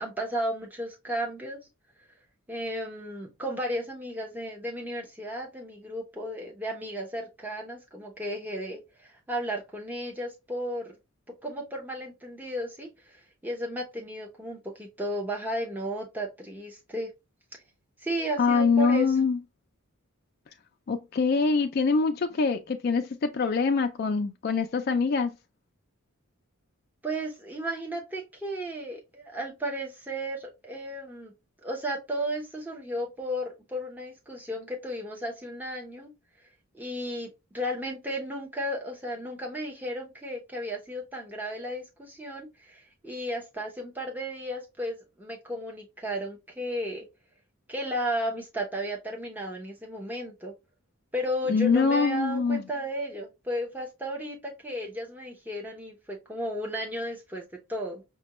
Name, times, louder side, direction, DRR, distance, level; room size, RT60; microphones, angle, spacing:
voice 1, 0.0-1.6 2.5-11.0 11.4-17.1 18.0-19.2 27.0-31.3 31.6-36.1 36.7-47.0 47.7-50.5 51.1-58.0, equal, 10° right, 0.7 m, -34 dB
voice 2, 18.4-19.4 20.9-25.3 51.5-52.6, left 4 dB, 45° left, 0.3 m, -24 dB
5.0 x 2.2 x 2.9 m
head